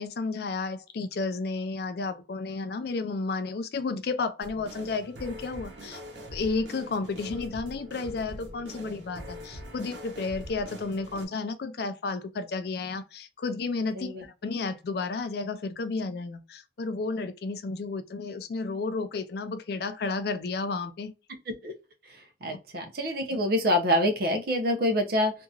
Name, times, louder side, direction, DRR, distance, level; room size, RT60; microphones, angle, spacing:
voice 1, 0.0-6.0 6.3-21.1 22.5-22.6, left 3 dB, 55° left, 0.4 m, -32 dB
sound 1, 4.4-11.3, equal, 85° right, 0.9 m, -43 dB
voice 2, 22.4-25.3, left 1 dB, 55° right, 0.7 m, -26 dB
2.8 x 2.5 x 2.3 m
head